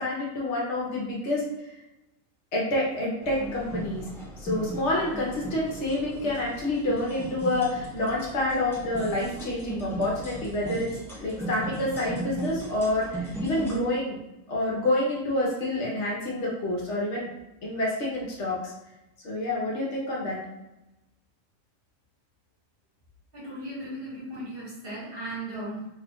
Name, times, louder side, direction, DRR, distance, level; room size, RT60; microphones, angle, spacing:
voice 1, 0.0-1.4 2.5-4.1 4.4-14.2 14.5-17.3 17.6-18.7 19.2-20.4, left 1 dB, 65° left, -4 dB, 1.1 m, -28 dB
sound 1, 3.2-13.8, right 1 dB, 5° left, 0.5 m, -37 dB
voice 2, 23.3-25.9, right 1 dB, 45° right, -7 dB, 1.4 m, -36 dB
2.9 x 2.3 x 3.5 m, 0.95 s
omnidirectional pair, 1.4 m